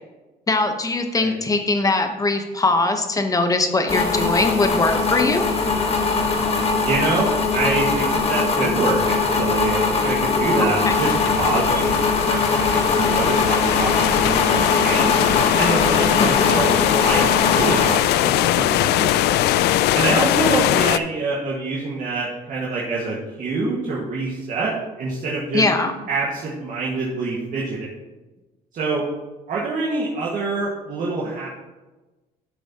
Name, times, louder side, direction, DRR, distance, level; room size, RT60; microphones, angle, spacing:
voice 1, 0.5-5.4 10.6-11.0 16.2-16.7 25.5-25.9, left 2 dB, 20° left, 6 dB, 1.0 m, -21 dB
sound 1, 3.9-18.0, left 4 dB, 35° left, 1.3 m, -21 dB
voice 2, 6.8-12.0 12.2-15.2 15.6-19.5 19.9-24.7 25.0-25.6 26.1-27.9 28.7-29.0 29.5-31.5, right 3 dB, 50° right, -6 dB, 1.8 m, -26 dB
sound 2, 10.9-21.0, left 13 dB, 80° left, 0.4 m, -21 dB
12.0 x 6.9 x 3.0 m, 1.1 s
cardioid pair, 110°, 17 cm